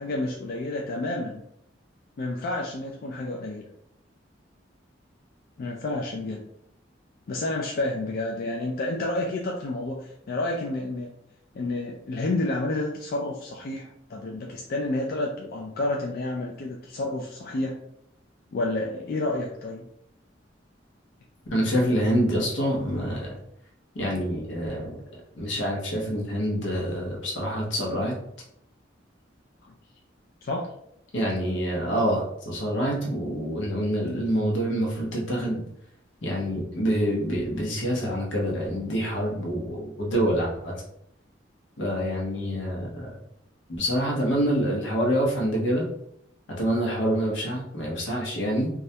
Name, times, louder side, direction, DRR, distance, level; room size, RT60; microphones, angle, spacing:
voice 1, 0.0-1.4 2.2-3.6 5.6-6.4 7.3-11.1 11.5-17.7 18.5-19.8 29.6-29.7 30.4-30.7, left 2 dB, 50° left, -1 dB, 0.3 m, -30 dB
voice 2, 21.5-23.4 23.9-24.9 25.4-28.1 31.1-35.6 36.2-40.7 41.8-43.1 43.8-45.8 46.6-48.7, equal, 80° left, -2 dB, 0.7 m, -26 dB
2.3 x 2.1 x 2.7 m, 0.74 s
head